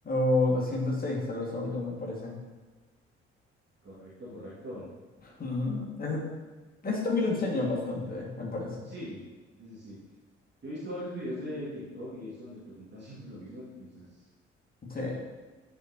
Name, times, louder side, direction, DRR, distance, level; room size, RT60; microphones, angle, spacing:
voice 1, 0.0-2.4 5.2-6.2 6.8-8.8 14.9-15.2, left 2 dB, 30° left, -3 dB, 2.1 m, -29 dB
voice 2, 3.8-4.9 8.9-9.2 9.6-10.0 10.6-14.1, equal, 35° right, -8 dB, 2.2 m, -40 dB
9.0 x 4.8 x 2.9 m, 1.3 s
figure-of-eight pair, 45°, 32 cm